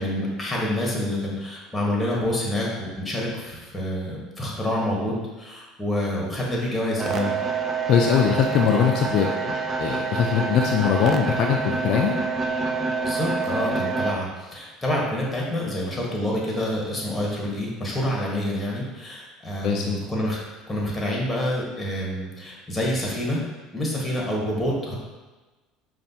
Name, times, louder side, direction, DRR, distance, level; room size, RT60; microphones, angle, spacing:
voice 1, 0.0-7.3 13.0-20.4 20.7-23.4 23.7-24.9, left 1 dB, 10° left, -3 dB, 1.3 m, -27 dB
sound 1, 7.0-14.1, right 4 dB, 35° right, 0.4 m, -27 dB
voice 2, 7.9-12.1 19.6-20.0, left 7 dB, 60° left, 1 dB, 0.3 m, -21 dB
5.2 x 2.3 x 2.7 m, 1.2 s
supercardioid pair, 85°, 0 cm